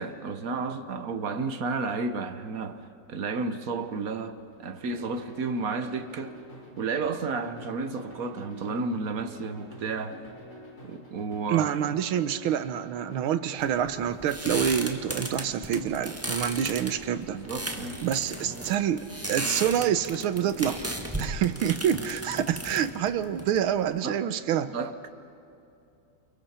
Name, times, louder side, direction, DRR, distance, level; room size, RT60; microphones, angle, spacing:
voice 1, 0.0-6.4 6.8-10.2 10.9-11.7 17.3-18.0 24.0-24.2 24.7-25.1, right 4 dB, 55° right, 1.1 m, -32 dB
sound 1, 4.5-21.6, equal, 35° left, 5.0 m, -48 dB
voice 2, 11.5-17.4 18.0-20.8 21.2-24.7, right 9 dB, 80° right, 1.6 m, -27 dB
sound 2, 13.6-24.0, right 1 dB, 10° right, 1.3 m, -35 dB
29.0 x 28.5 x 4.4 m
omnidirectional pair, 2.4 m